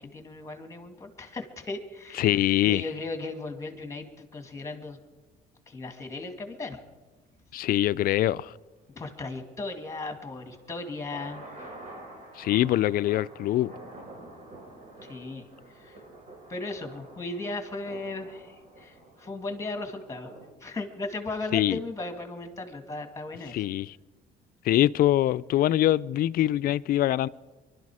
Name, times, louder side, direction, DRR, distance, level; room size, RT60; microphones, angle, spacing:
voice 1, 0.0-2.3 2.6-5.0 5.7-6.8 9.0-11.7 15.0-16.0 16.5-20.3 20.6-23.6, left 2 dB, 15° left, 2.1 m, -37 dB
voice 2, 2.2-2.9 7.5-8.5 12.4-13.7 21.5-21.8 23.5-24.0 24.6-27.3, left 13 dB, 60° left, 0.4 m, -24 dB
sound 1, 10.3-20.5, right 2 dB, 45° right, 4.0 m, -48 dB
24.0 x 12.0 x 4.9 m
cardioid pair, 110°, 17 cm